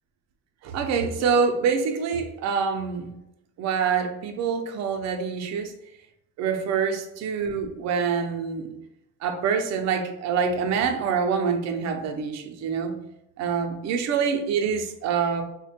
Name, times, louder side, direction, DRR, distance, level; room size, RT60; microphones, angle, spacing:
voice 1, 0.6-3.1 3.6-5.7 6.4-8.7 9.2-13.0 13.4-15.4, right 6 dB, 45° right, 5 dB, 0.5 m, -26 dB
3.2 x 2.2 x 4.2 m, 0.86 s
cardioid pair, 155°, 38 cm